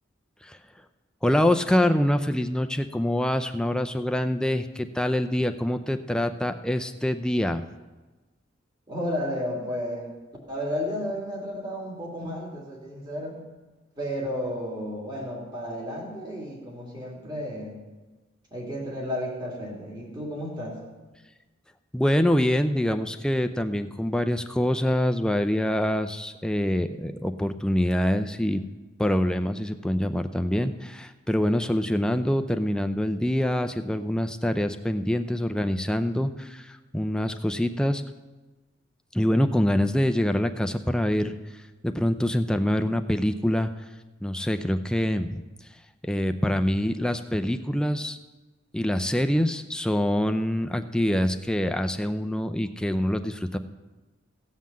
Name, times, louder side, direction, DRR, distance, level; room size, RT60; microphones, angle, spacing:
voice 1, 1.2-7.6 21.9-28.6 29.0-38.0 39.1-41.4 41.8-43.7 44.2-45.4 46.0-48.2 48.7-53.6, left 1 dB, 5° left, 8 dB, 0.4 m, -25 dB
voice 2, 8.9-10.1 10.5-13.5 14.0-17.8 18.5-20.8, equal, 25° right, -3 dB, 2.9 m, -32 dB
16.0 x 5.7 x 7.5 m, 1.2 s
head